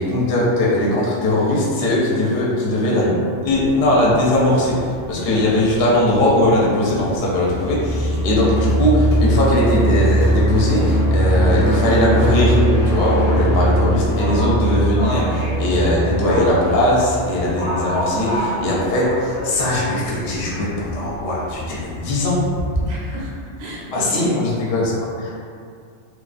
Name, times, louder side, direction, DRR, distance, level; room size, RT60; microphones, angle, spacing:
voice 1, 0.0-3.1 3.4-4.7 5.1-12.6 12.8-22.4 23.9-25.3, left 1 dB, 65° left, -5 dB, 0.7 m, -19 dB
sound 1, 2.5-16.1, equal, 45° left, 0.4 m, -39 dB
Livestock farm animals working animals, 3.5-22.8, equal, 30° left, 0.8 m, -32 dB
voice 2, 5.1-5.5 11.2-11.4 18.1-18.4 22.8-24.4, right 3 dB, 65° right, -6 dB, 0.7 m, -30 dB
sound 2, 7.4-18.1, right 1 dB, 30° right, 0.5 m, -20 dB
2.3 x 2.3 x 2.4 m, 2.2 s
omnidirectional pair, 1.2 m